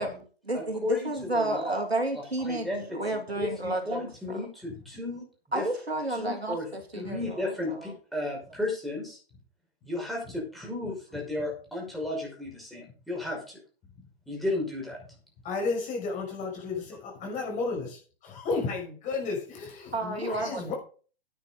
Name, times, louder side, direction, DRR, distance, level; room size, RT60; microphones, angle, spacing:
voice 1, 0.0-4.0 4.3-4.4 5.5-7.9 19.9-20.7, right 2 dB, 90° right, 4 dB, 2.9 m, -31 dB
voice 2, 0.5-1.8 2.4-5.3 5.5-5.6 6.1-6.7 6.9-9.2 9.9-13.6 14.3-15.0, left 2 dB, ahead, -3 dB, 5.7 m, -34 dB
voice 3, 15.4-20.7, left 4 dB, 25° left, 0 dB, 6.2 m, -33 dB
9.8 x 9.6 x 5.3 m, 0.40 s
figure-of-eight pair, 120°, 30 cm